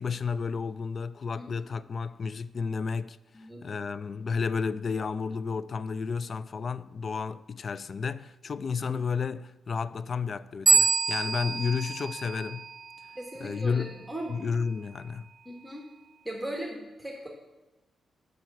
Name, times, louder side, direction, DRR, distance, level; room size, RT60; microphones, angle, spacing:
voice 1, 0.0-3.2 3.6-12.7 13.4-15.3, left 5 dB, 50° left, 0.3 m, -32 dB
voice 2, 1.4-1.7 3.3-3.6 8.8-8.9 13.1-14.4 15.4-15.9 16.2-17.3, right 1 dB, 5° right, 1.3 m, -38 dB
sound 1, 10.7-13.1, right 4 dB, 40° right, 0.4 m, -26 dB
6.1 x 5.8 x 7.1 m
cardioid pair, 80°, 0 cm